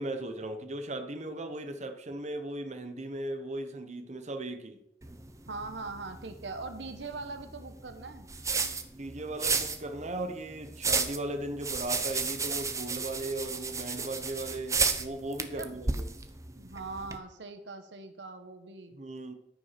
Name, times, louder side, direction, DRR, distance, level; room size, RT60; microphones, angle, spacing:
voice 1, 0.0-4.8 8.9-16.1 18.9-19.3, right 1 dB, 40° right, 7 dB, 1.1 m, -37 dB
sound 1, 5.0-17.2, right 4 dB, 15° right, 0.8 m, -34 dB
voice 2, 5.5-8.3 15.5-15.8 16.6-19.0, right 3 dB, 75° right, 8 dB, 1.1 m, -41 dB
14.0 x 6.2 x 5.9 m, 0.79 s
head